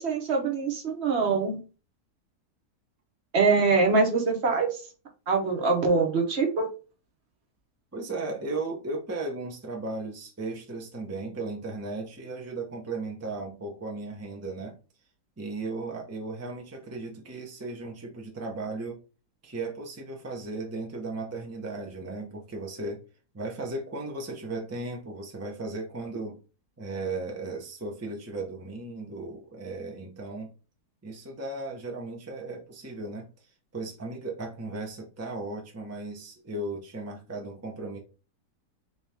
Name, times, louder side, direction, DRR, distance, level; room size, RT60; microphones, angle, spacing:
voice 1, 0.0-1.6 3.3-4.8 5.3-6.7, right 4 dB, 50° right, 3 dB, 1.0 m, -24 dB
voice 2, 7.9-14.8 15.4-19.0 19.4-23.0 23.3-26.4 26.8-30.5 31.0-33.3 33.7-38.0, right 2 dB, 25° right, 0 dB, 0.3 m, -36 dB
3.7 x 2.9 x 3.4 m, 0.33 s
omnidirectional pair, 1.8 m